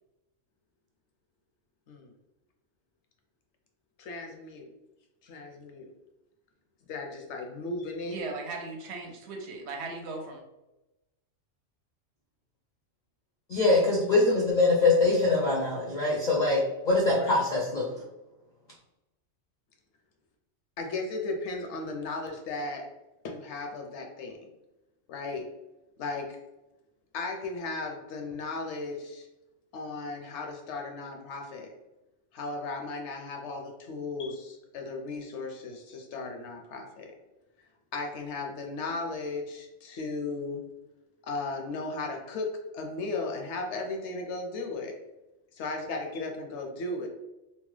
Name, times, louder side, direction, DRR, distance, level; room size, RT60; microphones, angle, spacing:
voice 1, 4.0-4.7 5.2-5.9 6.9-8.2 17.2-17.3 20.8-22.9 23.2-24.5 25.1-25.4 26.0-26.4 27.1-29.3 29.7-31.7 32.3-37.1 37.9-40.6 41.2-44.9 45.5-47.1, left 3 dB, 70° left, 3 dB, 0.8 m, -36 dB
voice 2, 8.0-10.4, right 3 dB, 70° right, 1 dB, 0.8 m, -37 dB
voice 3, 13.5-17.9, left 2 dB, 55° left, -4 dB, 0.5 m, -23 dB
2.8 x 2.1 x 3.1 m, 0.97 s
omnidirectional pair, 1.3 m